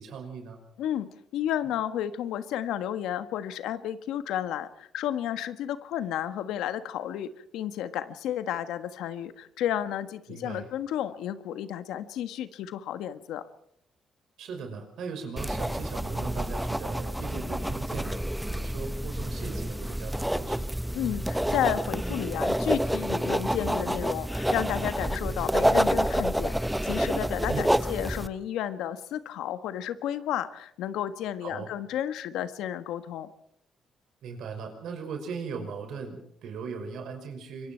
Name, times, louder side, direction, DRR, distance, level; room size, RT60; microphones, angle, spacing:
voice 1, 0.0-0.6 10.3-10.7 14.4-20.8 27.5-27.7 31.4-31.7 34.2-37.7, right 5 dB, 75° right, 5 dB, 5.8 m, -39 dB
voice 2, 0.8-13.4 20.9-33.3, left 11 dB, 90° left, 11 dB, 1.4 m, -32 dB
sound 1, 15.4-28.3, right 1 dB, 5° right, 0.8 m, -28 dB
25.5 x 23.0 x 4.6 m, 0.71 s
cardioid pair, 90°, 0 cm